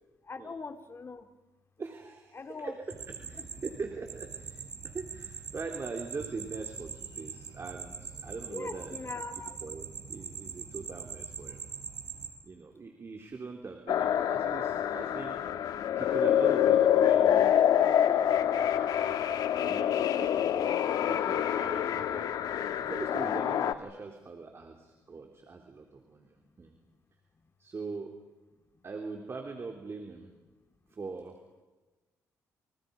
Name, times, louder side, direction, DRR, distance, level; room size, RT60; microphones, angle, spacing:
voice 1, 0.3-1.2 2.3-2.7 3.4-3.5 8.5-9.6, left 4 dB, 40° left, 8 dB, 2.3 m, -41 dB
voice 2, 1.8-2.8 3.3-9.0 9.5-11.6 12.4-20.7 21.0-22.3 22.5-26.7 27.6-28.1 28.8-30.3 30.9-31.3, right 4 dB, 40° right, 3 dB, 3.5 m, -42 dB
sound 1, 2.9-12.3, right 6 dB, 65° right, 6.5 m, -42 dB
sound 2, 13.9-23.7, left 10 dB, 75° left, 1.4 m, -26 dB
28.5 x 28.0 x 5.4 m, 1.2 s
cardioid pair, 75°, 7 cm